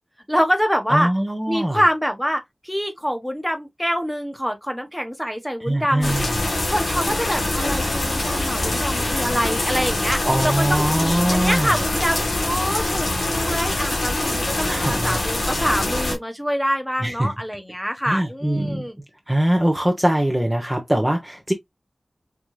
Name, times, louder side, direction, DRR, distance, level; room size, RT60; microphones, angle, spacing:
voice 1, 0.3-1.1 1.5-6.1 6.7-19.0, equal, 5° left, 1.1 m, -25 dB
voice 2, 0.9-1.8 5.6-6.3 10.2-11.8 14.6-15.2 17.0-17.3 18.1-18.9 19.3-21.5, right 1 dB, 10° right, 0.8 m, -22 dB
sound 1, 6.0-16.1, left 2 dB, 90° left, 1.8 m, -24 dB
4.7 x 2.7 x 2.2 m
cardioid pair, 45°, 0 cm